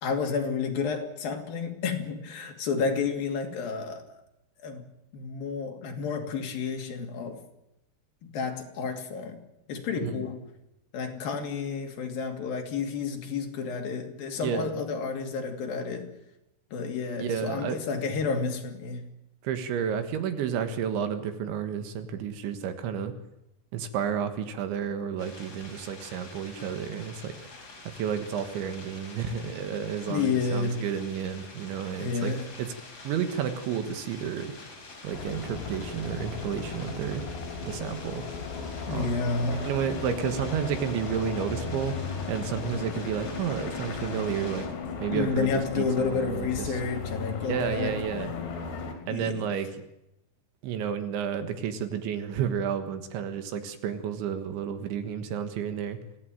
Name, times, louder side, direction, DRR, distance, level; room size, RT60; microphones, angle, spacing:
voice 1, 0.0-4.2 4.6-4.8 5.1-7.5 8.2-9.4 9.7-10.4 10.9-16.2 16.7-19.1 30.1-30.9 32.0-32.5 38.6-39.7 45.1-48.0 49.1-49.5, left 5 dB, 55° left, 3 dB, 4.1 m, -30 dB
voice 2, 9.9-10.3 14.4-14.7 17.2-17.8 19.4-23.1 23.7-27.4 27.9-32.3 32.6-32.7 33.1-34.5 35.0-37.2 37.6-38.3 38.9-39.1 39.6-44.7 45.0-46.5 47.4-48.3 49.1-49.8 50.6-56.0, right 8 dB, 80° right, 8 dB, 4.0 m, -31 dB
sound 1, 25.2-44.7, left 3 dB, 35° left, 5.8 m, -47 dB
sound 2, 35.1-48.9, left 5 dB, 75° left, 5.6 m, -36 dB
25.5 x 16.5 x 9.1 m, 0.89 s
omnidirectional pair, 5.2 m